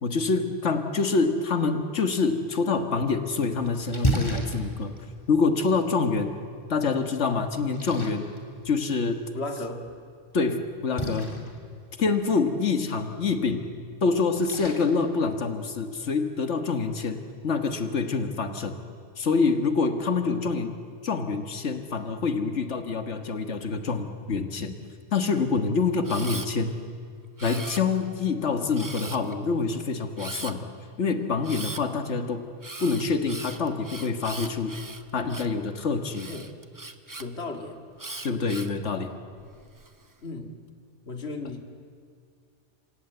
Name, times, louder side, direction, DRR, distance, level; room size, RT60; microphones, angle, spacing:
voice 1, 0.0-4.9 5.3-6.3 6.7-8.3 8.7-9.3 10.3-11.3 12.0-13.7 14.0-18.8 19.2-20.8 21.0-24.7 25.1-26.8 27.4-30.7 31.0-32.5 32.8-34.8 35.1-36.3 38.2-39.1, left 4 dB, 85° left, 7 dB, 1.8 m, -26 dB
Splash splatter, 3.0-16.0, equal, 25° left, 2.8 m, -36 dB
voice 2, 9.3-9.8 36.2-36.5 37.2-37.8 40.2-40.5 41.0-41.8, left 2 dB, 65° left, 4 dB, 2.4 m, -35 dB
Camera, 26.0-26.5 27.4-28.1 28.7-29.3 30.2-30.5 31.4-31.8 32.6-35.6 36.1-37.2 38.0-38.8 39.4-39.9, right 2 dB, 20° right, 0.9 m, -39 dB
27.5 x 26.0 x 8.0 m, 2.2 s
omnidirectional pair, 1.2 m